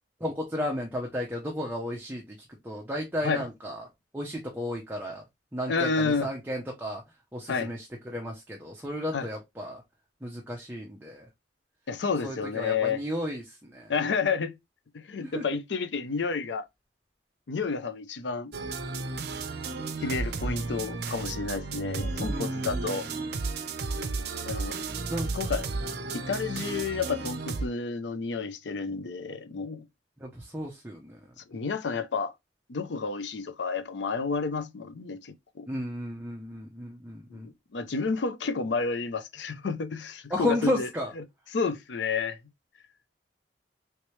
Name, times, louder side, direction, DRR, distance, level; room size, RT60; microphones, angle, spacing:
voice 1, 0.2-2.2 2.6-3.8 4.1-5.2 5.5-7.0 7.3-9.8 10.2-11.3 12.2-13.4 13.7-13.9 15.2-15.4 22.3-23.0 25.1-25.3 30.2-31.2 35.7-37.5 40.3-41.1, left 1 dB, 10° right, 0.6 m, -33 dB
voice 2, 5.7-6.3 7.5-7.7 9.1-9.3 11.9-13.0 13.9-14.5 15.1-16.6 17.5-18.5 20.0-23.1 24.4-24.8 25.3-25.7 26.1-29.8 31.5-32.3 32.7-35.7 37.3-40.9 41.2-41.3 41.5-42.4, left 5 dB, 80° left, 0.5 m, -30 dB
sound 1, 18.5-27.7, right 3 dB, 65° right, 0.5 m, -33 dB
3.2 x 3.1 x 3.0 m
head